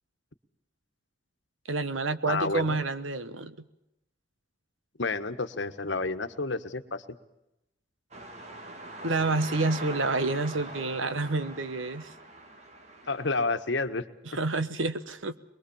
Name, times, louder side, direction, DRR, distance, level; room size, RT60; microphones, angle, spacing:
voice 1, 1.7-3.6 9.0-12.1 14.3-15.4, right 3 dB, 90° right, 12 dB, 1.3 m, -28 dB
voice 2, 2.3-2.8 5.0-7.0 13.1-14.0, left 3 dB, 70° left, 9 dB, 1.4 m, -30 dB
sound 1, 8.1-13.4, right 2 dB, 35° right, 2.0 m, -42 dB
23.0 x 22.5 x 7.2 m, 0.87 s
head